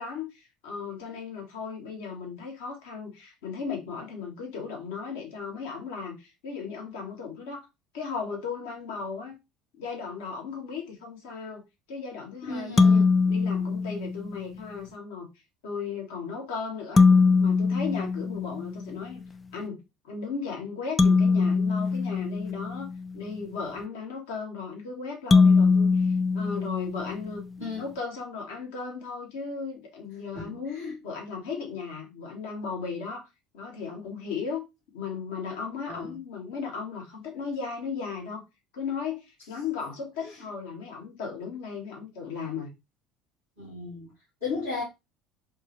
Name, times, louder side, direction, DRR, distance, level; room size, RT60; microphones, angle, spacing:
voice 1, 0.0-7.7 7.9-9.4 9.8-15.3 15.6-17.0 17.4-19.2 19.5-27.4 27.8-33.3 33.5-34.6 34.9-38.4 38.7-42.7, left 5 dB, 65° left, 1.5 m, -36 dB
voice 2, 12.4-13.0 27.6-27.8 30.3-31.0 35.9-36.2 40.2-40.4 43.6-44.1 44.4-44.8, left 4 dB, 85° left, 2.8 m, -35 dB
sound 1, 12.8-14.4 17.0-19.0 21.0-23.1 25.3-27.4, left 4 dB, 25° left, 0.4 m, -22 dB
4.3 x 3.3 x 3.2 m
figure-of-eight pair, 65°, 0 cm